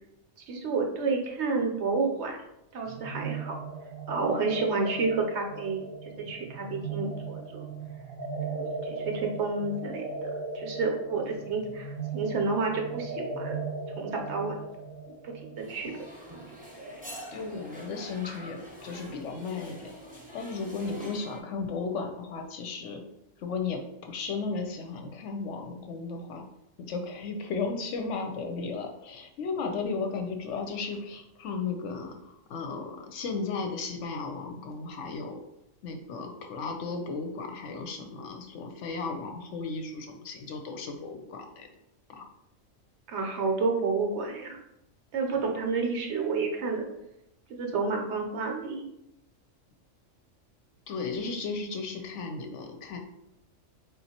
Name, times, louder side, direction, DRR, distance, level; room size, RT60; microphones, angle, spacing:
voice 1, 0.5-2.4 2.7-3.5 4.1-7.7 8.4-11.9 12.1-13.6 14.0-14.5 15.1-15.9 16.3-16.4 43.1-44.6 45.1-46.9 47.5-48.9, right 4 dB, 65° right, 2 dB, 0.9 m, -30 dB
sound 1, 2.9-16.4, right 3 dB, 90° right, 1.2 m, -37 dB
sound 2, 15.6-21.4, equal, 10° right, 0.7 m, -45 dB
voice 2, 17.3-23.0 23.4-26.4 26.8-35.4 35.8-41.7 42.1-42.3 50.9-53.0, left 4 dB, 70° left, 4 dB, 0.9 m, -35 dB
4.1 x 3.6 x 2.8 m, 0.85 s
omnidirectional pair, 1.4 m